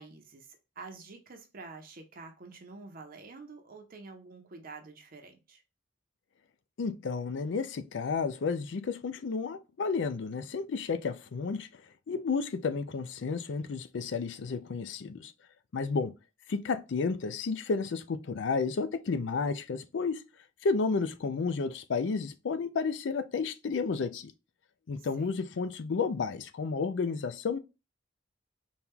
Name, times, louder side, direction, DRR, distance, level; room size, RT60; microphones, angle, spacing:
voice 1, 0.0-5.6 25.0-25.3, right 3 dB, 50° right, 0.7 m, -48 dB
voice 2, 6.8-11.8 12.1-15.3 15.7-16.1 16.5-20.2 20.6-24.3 24.9-27.6, left 4 dB, 65° left, 0.4 m, -32 dB
4.2 x 2.3 x 3.6 m
head